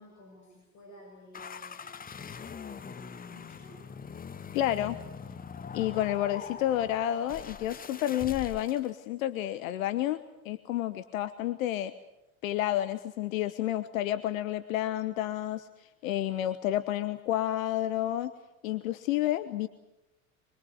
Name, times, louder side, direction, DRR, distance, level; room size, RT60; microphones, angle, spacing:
voice 1, 0.0-2.1 2.7-3.8 6.2-6.6, left 1 dB, 40° left, 1 dB, 7.8 m, -53 dB
sound 1, 1.3-8.9, left 6 dB, 20° left, 1.0 m, -43 dB
voice 2, 4.5-5.0 5.7-11.9 12.4-15.7 16.0-18.3 18.6-19.7, left 13 dB, 65° left, 12 dB, 1.1 m, -30 dB
25.0 x 22.5 x 8.3 m, 0.92 s
figure-of-eight pair, 65°, 43 cm